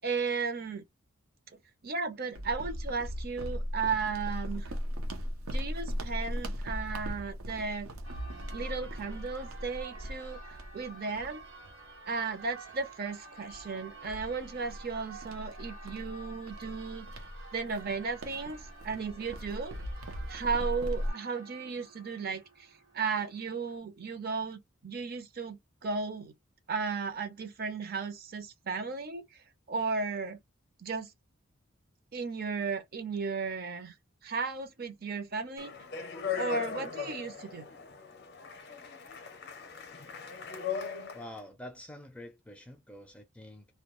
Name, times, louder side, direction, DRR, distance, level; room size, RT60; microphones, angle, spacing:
voice 1, 0.0-0.8 1.8-4.7 5.5-7.9 8.5-10.4 10.7-11.4 12.1-17.1 17.5-19.8 20.3-26.3 26.7-29.2 29.7-30.4 30.8-31.1 32.1-33.9 34.2-35.7 36.3-37.7, right 4 dB, 45° right, 0.5 m, -35 dB
sound 1, 2.3-12.2 12.7-12.9 13.4-21.1, equal, 90° right, 0.6 m, -38 dB
Church bell, 8.0-23.8, right 3 dB, 65° right, 1.2 m, -50 dB
Speech, 35.6-41.4, left 7 dB, 55° left, 0.5 m, -39 dB
voice 2, 41.1-43.7, left 1 dB, 5° left, 0.4 m, -47 dB
2.2 x 2.2 x 2.9 m
head